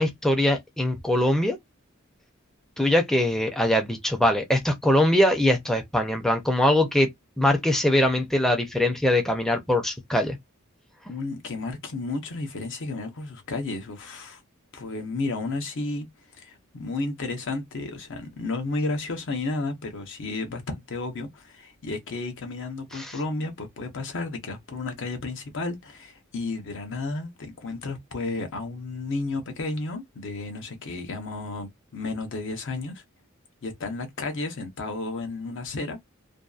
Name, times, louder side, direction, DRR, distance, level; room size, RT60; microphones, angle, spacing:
voice 1, 0.0-1.6 2.8-7.1 7.4-10.4 22.9-23.2, left 1 dB, ahead, 0.4 m, -22 dB
voice 2, 11.1-14.4 14.7-16.1 16.4-33.0 33.6-36.0, left 3 dB, 65° left, 0.7 m, -32 dB
2.6 x 2.3 x 2.3 m
head